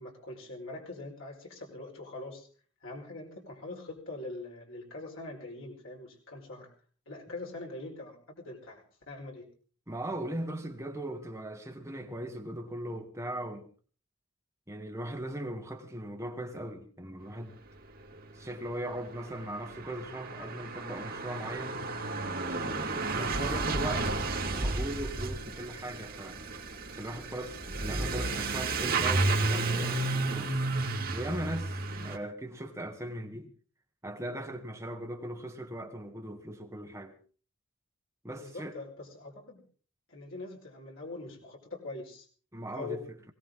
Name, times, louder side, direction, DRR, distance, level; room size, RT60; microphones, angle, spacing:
voice 1, 0.0-2.5 2.8-6.7 7.1-9.4 38.3-39.6 40.1-42.3 42.7-43.0, left 2 dB, 70° left, 4.8 m, -43 dB
voice 2, 9.9-13.7 14.7-17.6 18.3-21.8 22.5-24.1 24.5-26.5 26.9-30.5 31.1-33.5 34.0-37.1 38.2-38.8 42.5-43.0, right 1 dB, 15° right, 1.6 m, -39 dB
Truck / Accelerating revving vroom, 18.5-18.6 18.8-32.2, right 3 dB, 45° right, 2.7 m, -32 dB
21.0 x 17.5 x 3.8 m
head